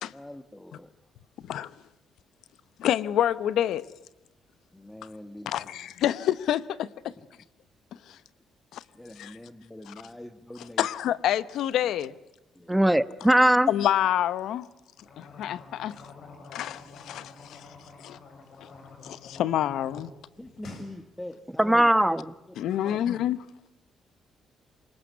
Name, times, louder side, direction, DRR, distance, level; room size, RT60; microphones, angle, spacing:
voice 1, 0.1-0.9 4.7-5.5 9.0-10.8 12.6-12.7 20.4-22.2 22.8-23.1, left 1 dB, 10° left, 1.5 m, -43 dB
voice 2, 1.4-1.7 2.8-3.8 5.5-6.9 8.1-8.2 8.7-8.8 9.2-9.4 9.9-10.0 10.5-12.1 13.7-14.7 15.2-16.0 16.5-17.6 18.0-18.2 18.6-18.7 19.0-20.1 22.6-23.4, left 11 dB, 80° left, 0.9 m, -27 dB
voice 3, 12.7-13.7 21.6-22.3, right 1 dB, 5° right, 1.0 m, -20 dB
sound 1, 15.0-20.1 20.4-20.9, left 4 dB, 60° left, 7.7 m, -47 dB
25.5 x 22.0 x 9.5 m
cardioid pair, 90°, 0 cm